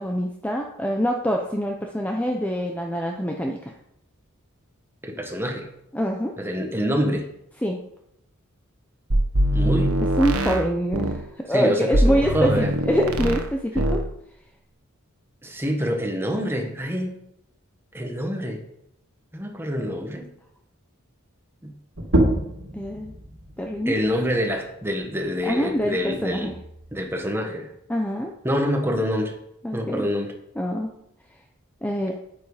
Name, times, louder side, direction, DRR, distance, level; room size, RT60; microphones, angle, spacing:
voice 1, 0.0-3.8 5.9-6.3 7.6-7.8 10.2-14.0 22.7-23.1 23.6-24.1 25.4-26.5 27.9-28.3 29.6-30.1 30.6-30.9 31.8-32.1, equal, 5° left, 1 dB, 0.8 m, -25 dB
voice 2, 5.0-5.7 6.4-7.3 9.5-10.0 11.5-12.7 15.4-17.2 17.9-18.6 19.3-20.3 21.6-21.7 23.8-26.5 26.9-27.7 28.4-29.3 29.7-30.3, equal, 10° right, 3 dB, 1.5 m, -26 dB
sound 1, 9.1-11.2 11.9-13.5 13.7-14.1, right 1 dB, 85° right, 1.2 m, -22 dB
sound 2, 22.0-27.2, right 1 dB, 60° right, 2.5 m, -29 dB
9.6 x 9.0 x 5.0 m, 0.78 s
head